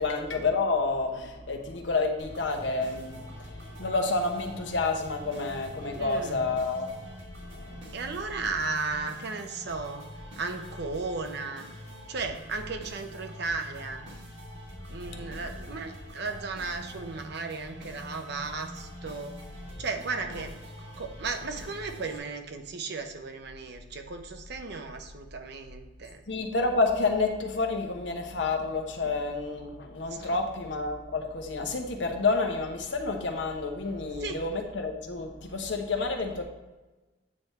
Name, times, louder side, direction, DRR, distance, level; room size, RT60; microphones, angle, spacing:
voice 1, 0.0-7.0 7.5-7.9 15.1-15.3 26.3-36.4, left 3 dB, 70° left, 4 dB, 0.9 m, -29 dB
sound 1, 2.2-22.2, equal, 85° right, 1.4 m, -46 dB
voice 2, 5.9-6.5 7.9-10.1 10.4-11.7 12.1-14.1 14.9-19.4 19.8-20.5 21.0-26.2 29.0-29.1 30.1-30.4 34.2-34.4, right 4 dB, 60° right, 6 dB, 0.7 m, -35 dB
8.6 x 3.5 x 4.2 m, 1.2 s
head